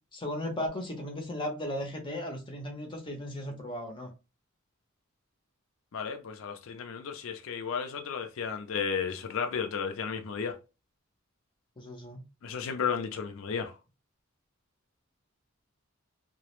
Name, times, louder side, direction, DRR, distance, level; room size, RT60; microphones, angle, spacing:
voice 1, 0.1-4.1 11.8-12.2, left 1 dB, 25° left, 0.6 m, -36 dB
voice 2, 5.9-10.6 12.4-13.7, left 6 dB, 70° left, 0.4 m, -33 dB
2.2 x 2.0 x 2.9 m
head